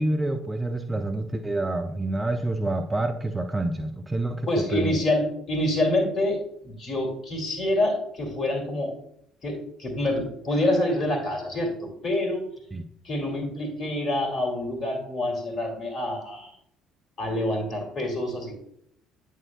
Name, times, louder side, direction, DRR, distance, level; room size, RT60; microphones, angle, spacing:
voice 1, 0.0-5.0 12.7-12.9, right 2 dB, 15° right, 6 dB, 0.6 m, -28 dB
voice 2, 4.5-8.9 9.4-12.4 13.0-16.5 17.2-18.6, left 1 dB, 45° left, 2 dB, 2.5 m, -27 dB
8.6 x 6.5 x 2.2 m, 0.69 s
figure-of-eight pair, 55°, 0 cm